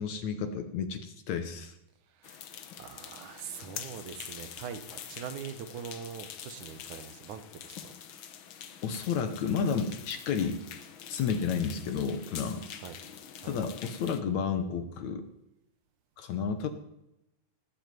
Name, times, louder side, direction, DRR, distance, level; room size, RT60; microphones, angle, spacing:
voice 1, 0.0-1.7 8.8-10.7 11.1-12.6 13.4-15.3 16.2-16.7, left 6 dB, 65° left, 9 dB, 2.2 m, -31 dB
voice 2, 2.1-2.5 2.8-7.9 12.8-13.0 13.4-13.6, right 7 dB, 70° right, 10 dB, 2.4 m, -43 dB
sound 1, 2.2-14.2, left 8 dB, 85° left, 1.1 m, -46 dB
18.5 x 8.0 x 9.3 m, 0.88 s
omnidirectional pair, 4.0 m